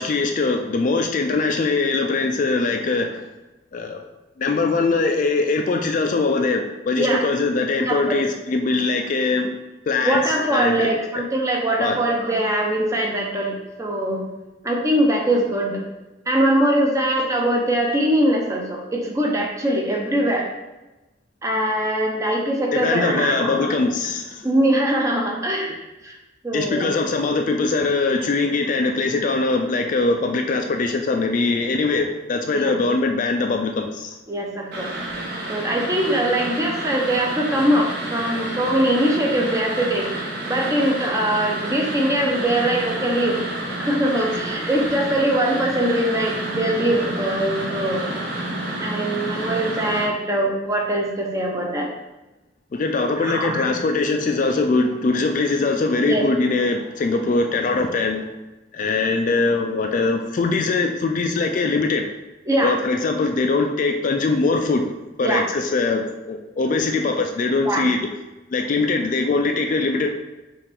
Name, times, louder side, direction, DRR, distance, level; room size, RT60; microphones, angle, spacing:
voice 1, 0.0-3.2 3.7-4.0 4.4-9.5 9.9-11.2 11.8-12.0 22.7-24.4 26.5-34.2 52.7-58.3 58.7-62.1 62.6-64.9 65.2-68.0 68.5-70.1, left 3 dB, 40° left, 4 dB, 0.3 m, -22 dB
voice 2, 7.8-8.2 10.0-14.3 14.6-15.8 16.3-20.5 21.4-23.8 24.4-26.2 26.4-27.0 32.5-32.7 34.3-34.9 35.5-43.4 43.8-48.1 48.8-51.9 53.2-53.7 56.0-56.3 62.5-62.7 65.2-65.4 67.7-67.9, right 1 dB, 15° right, -1 dB, 0.6 m, -22 dB
sound 1, 34.7-50.0, right 1 dB, 55° right, 1.1 m, -29 dB
5.6 x 2.5 x 3.4 m, 1.1 s
head